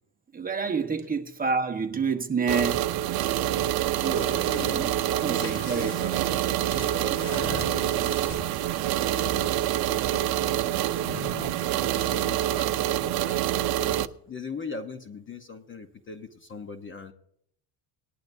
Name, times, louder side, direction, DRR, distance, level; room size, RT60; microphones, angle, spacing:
voice 1, 0.3-2.9 4.0-6.2, right 5 dB, 20° right, 1.1 m, -29 dB
sound 1, 2.5-14.1, right 13 dB, 60° right, 0.6 m, -26 dB
sound 2, 3.9-9.5 10.9-13.2, left 3 dB, 50° left, 2.3 m, -42 dB
voice 2, 3.9-11.5 11.8-17.1, left 4 dB, 30° left, 0.9 m, -41 dB
19.0 x 11.5 x 2.6 m
cardioid pair, 150°, 43 cm